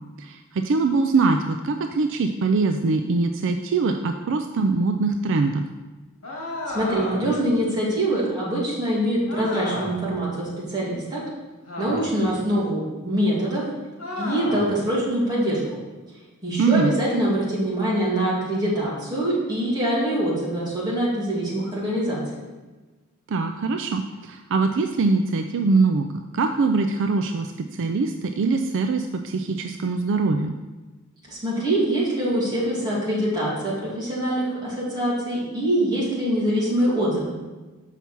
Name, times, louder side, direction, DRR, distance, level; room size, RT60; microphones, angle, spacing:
voice 1, 0.2-5.6 16.6-16.9 23.3-26.1 26.3-30.6, right 3 dB, 60° right, 6 dB, 0.4 m, -23 dB
sound 1, 6.2-7.5 9.3-10.1 11.7-12.3 14.0-14.8, left 1 dB, 70° left, 2.1 m, -33 dB
voice 2, 6.7-11.2 11.8-13.6 14.2-15.6 16.4-22.2 31.3-37.4, right 1 dB, 20° right, -7 dB, 2.7 m, -24 dB
6.9 x 5.7 x 4.5 m, 1.2 s
head